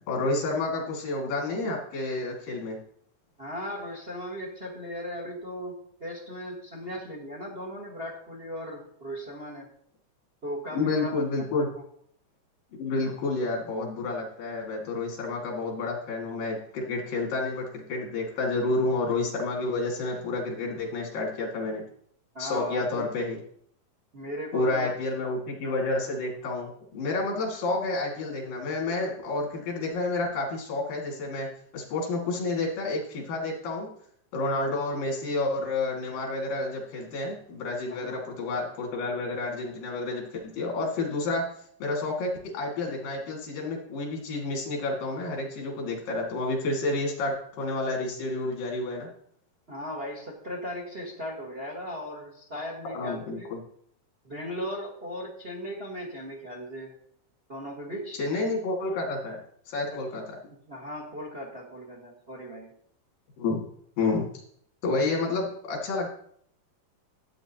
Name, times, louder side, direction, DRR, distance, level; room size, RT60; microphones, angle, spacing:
voice 1, 0.1-2.8 10.8-11.7 12.8-21.8 22.4-23.4 24.5-33.9 34.3-41.5 41.8-49.1 52.9-53.6 58.2-59.4 59.7-60.4 63.4-63.6 64.0-64.4 64.8-66.1, left 2 dB, 85° left, -1 dB, 3.8 m, -30 dB
voice 2, 3.4-9.7 10.4-11.1 22.3-23.1 24.1-24.9 25.2-25.3 25.6-25.8 38.0-38.3 49.7-53.5 54.2-56.9 57.5-58.2 59.9-60.0 60.7-62.7, equal, 35° right, -1 dB, 0.9 m, -37 dB
13.0 x 8.1 x 2.9 m, 0.65 s
omnidirectional pair, 3.8 m